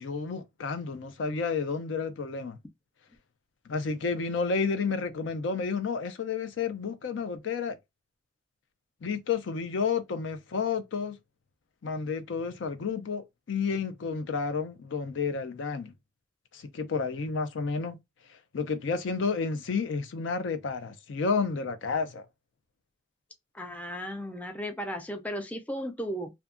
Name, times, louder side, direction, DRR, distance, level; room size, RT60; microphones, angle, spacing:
voice 1, 0.0-2.6 3.7-7.8 9.0-11.2 11.8-15.9 16.5-18.0 18.5-22.2, left 5 dB, 70° left, 0.4 m, -31 dB
voice 2, 23.5-26.3, equal, 10° left, 0.3 m, -35 dB
2.6 x 2.2 x 2.4 m
head